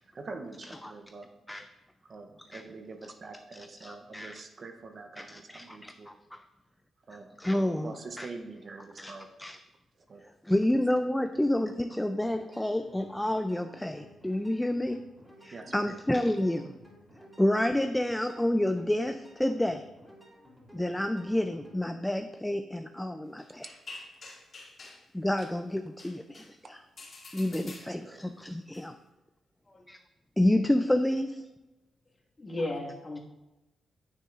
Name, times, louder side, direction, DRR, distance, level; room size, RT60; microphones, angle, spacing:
voice 1, 0.1-1.3 2.0-6.2 7.1-7.4 7.8-9.3 10.0-10.2 11.3-11.5 15.5-16.0 26.6-26.7 27.7-28.3, right 3 dB, 45° right, 6 dB, 0.7 m, -45 dB
voice 2, 3.8-4.3 5.3-6.4 7.4-8.3 9.0-9.1 9.4-9.6 10.5-15.0 15.4-16.7 17.4-19.8 20.7-23.7 25.1-26.8 27.3-28.9 29.9-30.0 30.4-31.5, left 1 dB, 5° left, 8 dB, 0.3 m, -29 dB
sound 1, 12.2-21.8, equal, 10° right, 2.8 m, -55 dB
sound 2, 23.4-25.0 25.4-25.6 26.0-26.5 27.0-28.2 28.7-28.8, left 3 dB, 50° left, 2.1 m, -47 dB
voice 3, 32.4-33.2, left 2 dB, 25° left, -2 dB, 1.7 m, -35 dB
9.2 x 6.8 x 2.5 m, 1.0 s
cardioid pair, 105°, 0 cm